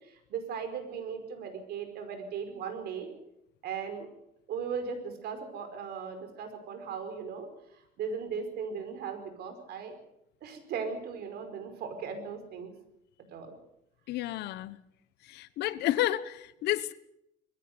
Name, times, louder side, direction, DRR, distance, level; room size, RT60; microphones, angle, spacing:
voice 1, 0.0-3.1 3.6-4.1 4.5-9.9 10.4-12.7 13.3-13.5, right 6 dB, 70° right, 5.2 m, -38 dB
voice 2, 14.1-14.8 15.3-16.9, left 14 dB, 80° left, 1.2 m, -31 dB
21.5 x 16.0 x 8.0 m
cardioid pair, 110°, 17 cm